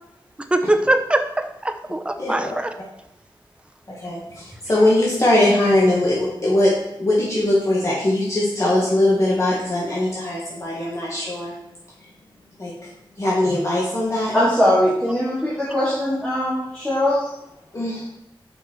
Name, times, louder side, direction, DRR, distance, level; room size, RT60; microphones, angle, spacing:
voice 1, 0.5-2.7, right 1 dB, 10° right, 7 dB, 0.6 m, -22 dB
voice 2, 2.2-2.5 4.0-6.7 7.0-11.5 12.6-12.7 13.2-14.3 17.7-18.0, left 1 dB, 35° left, -6 dB, 1.7 m, -20 dB
voice 3, 14.3-17.2, left 1 dB, 10° left, -11 dB, 2.5 m, -20 dB
6.5 x 5.7 x 4.5 m, 0.84 s
wide cardioid pair, 130°, 9 cm